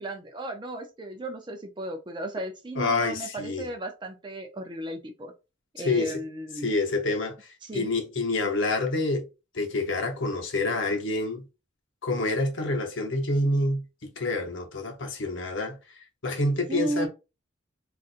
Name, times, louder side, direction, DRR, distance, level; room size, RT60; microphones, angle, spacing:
voice 1, 0.0-5.3 5.7-6.7 7.6-7.9 16.7-17.1, right 1 dB, 20° right, 0.4 m, -34 dB
voice 2, 2.8-3.7 5.8-6.2 6.6-9.3 9.5-11.4 12.0-15.8 16.2-17.1, left 2 dB, 65° left, 0.8 m, -27 dB
4.0 x 2.5 x 2.4 m
head